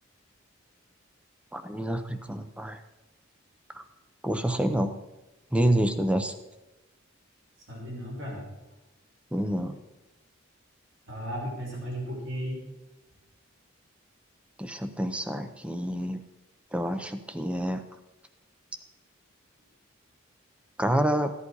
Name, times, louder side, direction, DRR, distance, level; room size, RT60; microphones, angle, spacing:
voice 1, 1.5-2.8 3.7-3.8 4.2-4.9 5.5-6.3 9.3-9.8 14.6-16.2 16.7-17.8 20.8-21.3, right 1 dB, 5° right, 8 dB, 0.8 m, -27 dB
voice 2, 7.7-8.5 11.0-12.6, equal, 65° right, -3 dB, 4.8 m, -35 dB
15.5 x 11.0 x 4.8 m, 1.0 s
head